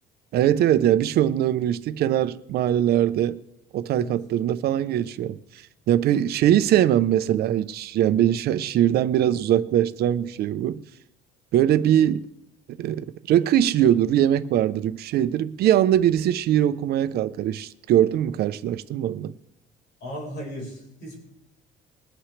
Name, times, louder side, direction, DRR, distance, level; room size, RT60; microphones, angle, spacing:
voice 1, 0.3-3.4 3.7-5.4 5.9-10.8 11.5-12.2 12.8-19.3, right 11 dB, 60° right, 0.7 m, -21 dB
voice 2, 20.0-21.2, equal, 60° left, 4.7 m, -36 dB
21.5 x 9.0 x 3.3 m
cardioid pair, 135°, 18 cm